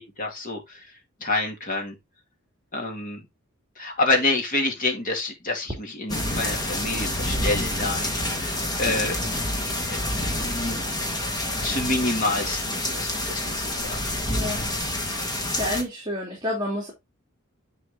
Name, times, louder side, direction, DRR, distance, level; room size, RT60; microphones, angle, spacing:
voice 1, 0.2-0.8 1.2-2.0 2.7-3.2 3.8-8.5 8.8-9.2 9.9-10.8 11.6-14.0, left 2 dB, 40° left, 2.4 m, -28 dB
sound 1, 6.1-15.8, left 1 dB, 20° left, 1.7 m, -28 dB
voice 2, 14.3-14.7 15.2-16.9, left 1 dB, 20° right, 3.0 m, -30 dB
10.0 x 4.2 x 3.8 m
head